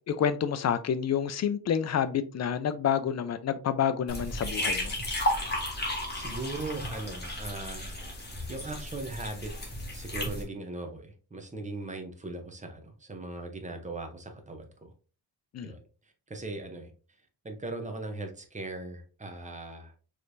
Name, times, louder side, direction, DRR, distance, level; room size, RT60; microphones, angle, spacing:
voice 1, 0.1-5.0 15.5-15.7, left 8 dB, 40° left, 0.4 m, -28 dB
sound 1, 4.1-10.4, left 1 dB, 25° left, 1.4 m, -33 dB
voice 2, 6.1-8.0 8.5-9.5 9.9-14.9 15.6-16.9 17.4-19.9, right 2 dB, 20° right, 0.8 m, -39 dB
4.8 x 3.3 x 2.6 m
wide cardioid pair, 130°, 40 cm